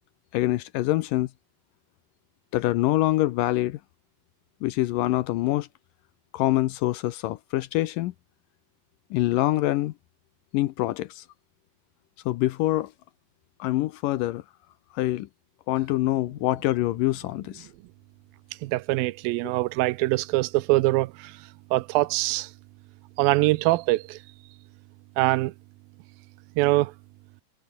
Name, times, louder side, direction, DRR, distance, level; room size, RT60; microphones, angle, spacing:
voice 1, 0.3-1.3 2.5-3.8 4.6-5.7 6.3-8.1 9.1-9.9 10.5-11.2 12.3-12.9 13.6-14.4 15.0-15.3 15.7-17.7, left 16 dB, 80° left, 2.2 m, -25 dB
voice 2, 18.6-21.1 21.7-22.5 23.2-24.2 25.2-25.5 26.6-26.9, right 19 dB, 85° right, 2.4 m, -23 dB
omnidirectional pair, 4.2 m